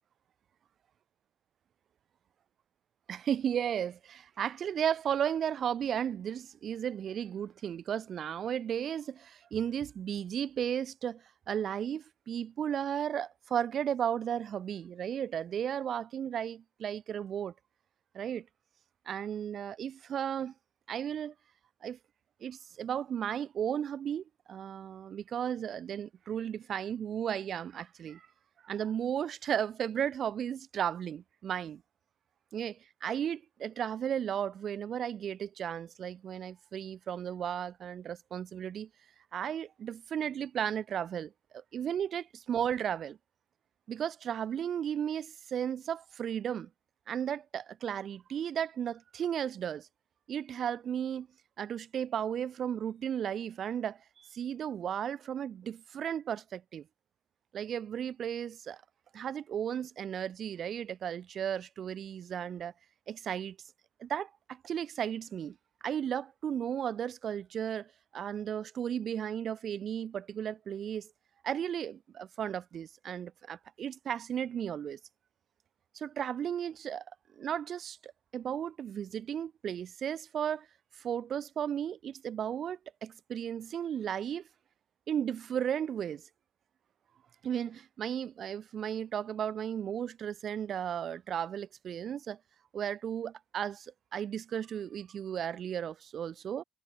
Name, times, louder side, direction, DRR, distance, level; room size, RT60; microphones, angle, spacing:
voice 1, 3.1-17.5 18.1-18.5 19.1-20.5 20.9-21.3 21.8-22.0 22.4-28.3 28.6-31.8 32.5-38.9 39.3-43.2 43.9-46.7 47.1-49.9 50.3-51.3 51.6-56.9 57.5-58.8 59.1-62.7 63.1-63.6 64.0-65.6 65.8-71.1 71.4-75.0 75.9-77.0 77.4-80.7 81.0-84.4 85.1-86.2 87.4-92.4 92.7-96.6, right 9 dB, 50° right, 0.4 m, -34 dB
cardioid pair, 95°, 0 cm